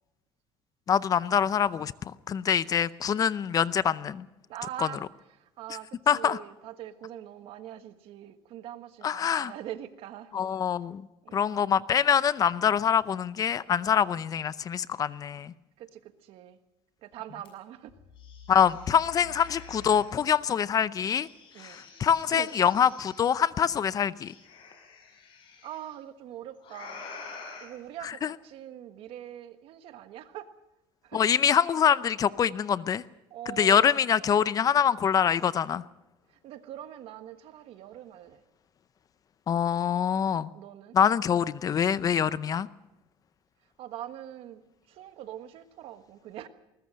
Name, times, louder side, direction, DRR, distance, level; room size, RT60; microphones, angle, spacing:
voice 1, 0.9-4.3 4.8-4.9 6.1-6.4 9.0-9.5 10.3-11.1 11.3-15.5 18.5-21.3 21.6-24.3 28.0-28.3 31.1-33.0 33.5-35.8 39.5-40.5 40.9-42.7, left 8 dB, 35° left, 17 dB, 0.6 m, -25 dB
voice 2, 4.5-5.1 5.4-10.3 11.2-11.7 15.8-16.6 17.0-17.9 21.5-21.8 22.3-22.5 25.6-27.1 27.6-30.5 31.0-31.2 33.3-34.1 36.4-38.4 40.5-41.0 43.8-44.6 44.9-46.5, right 12 dB, 70° right, 9 dB, 1.5 m, -43 dB
sound 1, 17.4-17.5 17.9-20.3 21.0-23.4 24.2-25.8 26.6-27.7, left 5 dB, 55° left, 7.2 m, -47 dB
21.0 x 19.5 x 6.4 m, 0.94 s
cardioid pair, 130°, 10 cm